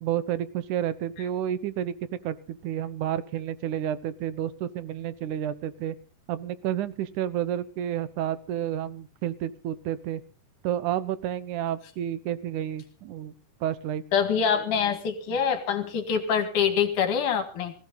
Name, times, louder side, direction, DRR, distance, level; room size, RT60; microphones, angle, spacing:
voice 1, 0.0-6.0 6.3-10.2 10.6-13.3 13.6-14.0, right 11 dB, 75° right, 15 dB, 2.2 m, -30 dB
voice 2, 14.1-17.7, left 7 dB, 70° left, 7 dB, 3.5 m, -25 dB
19.0 x 15.5 x 4.0 m, 0.38 s
omnidirectional pair, 3.8 m